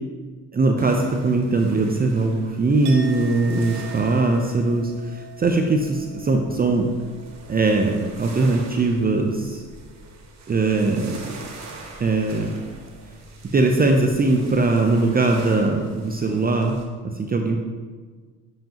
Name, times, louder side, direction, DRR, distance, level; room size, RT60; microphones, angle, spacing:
voice 1, 0.5-6.9 7.5-9.6 10.5-11.2 12.0-12.6 13.5-16.8 17.1-17.6, right 3 dB, 25° right, 3 dB, 0.6 m, -21 dB
sound 1, 0.8-16.8, right 3 dB, 45° right, 1.2 m, -43 dB
Chink clink, 2.8-8.8 9.1-9.5, right 6 dB, 75° right, 1.0 m, -43 dB
7.6 x 5.1 x 2.9 m, 1.4 s
hypercardioid pair, 70°, 38 cm